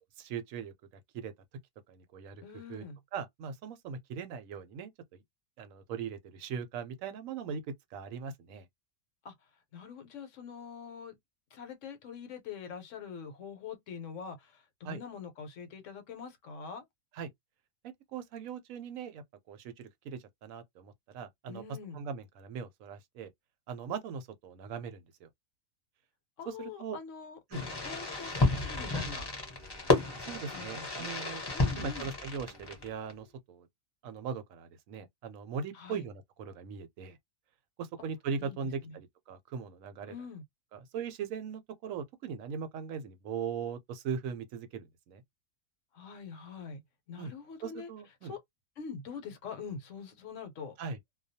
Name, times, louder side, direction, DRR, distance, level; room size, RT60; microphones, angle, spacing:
voice 1, 0.2-0.7 1.1-1.3 1.9-2.4 2.7-2.8 3.1-4.9 5.6-7.6 7.9-8.6 14.8-15.0 17.1-17.3 18.1-21.6 21.9-23.3 23.7-25.3 26.5-27.0 27.5-27.6 28.4-28.6 30.3-31.4 31.7-33.7 34.0-37.2 37.8-40.1 40.7-45.2 47.2-47.3 47.6-48.3 50.8-51.0, right 6 dB, 80° right, 1.0 m, -40 dB
voice 2, 2.4-3.0 9.2-9.3 9.7-11.1 11.5-16.8 21.5-22.0 26.4-27.4 27.8-29.3 30.5-31.2 31.5-32.1 35.7-36.0 38.0-38.1 38.4-38.6 38.8-39.0 40.1-40.4 45.9-46.8 47.1-47.9 48.2-48.4 48.8-50.8, left 6 dB, 70° left, 1.0 m, -44 dB
Fireworks, 27.5-33.1, left 2 dB, 20° left, 0.7 m, -32 dB
2.3 x 2.2 x 2.6 m
omnidirectional pair, 1.4 m